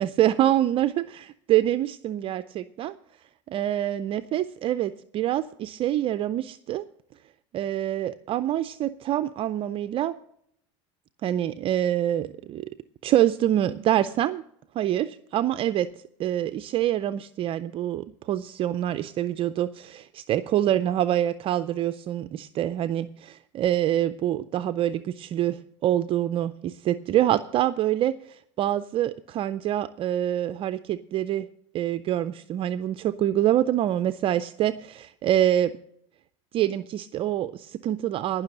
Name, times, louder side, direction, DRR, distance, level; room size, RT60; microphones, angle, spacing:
voice 1, 0.0-2.9 3.5-6.8 7.5-10.1 11.2-12.7 13.0-14.4 14.7-15.9 16.2-31.5 31.7-35.7 36.5-38.4, right 12 dB, 35° right, 12 dB, 0.4 m, -26 dB
17.5 x 6.1 x 6.5 m, 0.70 s
supercardioid pair, 125°, 15 cm